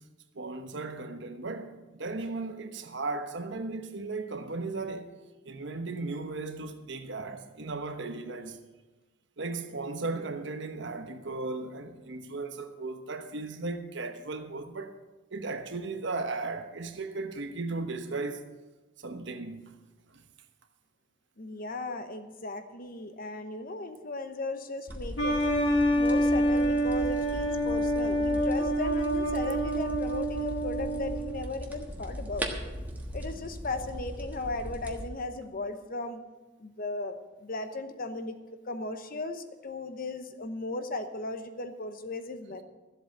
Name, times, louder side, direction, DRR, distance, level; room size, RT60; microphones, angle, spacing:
voice 1, 0.3-5.1 5.4-8.6 9.4-15.0 15.3-18.4 19.0-19.7, right 3 dB, 60° right, 1.1 m, -36 dB
voice 2, 21.4-25.4 25.9-32.5 33.1-36.2 36.6-37.2 37.4-38.4 38.7-42.6, left 2 dB, 45° left, 0.9 m, -36 dB
sound 1, 24.9-35.1, equal, 10° right, 1.3 m, -39 dB
sound 2, 25.2-31.5, right 1 dB, 65° left, 2.1 m, -27 dB
14.0 x 8.0 x 7.4 m
head